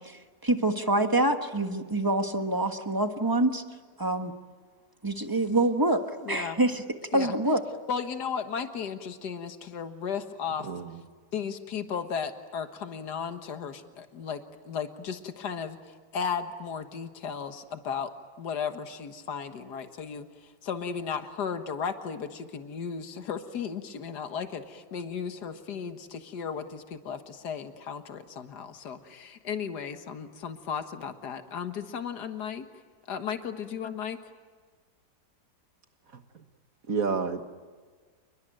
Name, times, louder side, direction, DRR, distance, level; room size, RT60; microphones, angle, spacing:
voice 1, 0.0-3.6 4.0-4.3 5.0-6.8 7.1-7.6, right 2 dB, 15° right, 6 dB, 1.3 m, -26 dB
voice 2, 6.2-6.6 7.1-7.3 7.9-10.7 11.3-18.1 18.4-32.6 33.1-34.2, left 6 dB, 70° left, 8 dB, 2.0 m, -35 dB
voice 3, 10.6-11.0 36.9-37.4, right 5 dB, 55° right, 8 dB, 1.9 m, -29 dB
29.0 x 22.0 x 9.1 m, 1.5 s
omnidirectional pair, 1.8 m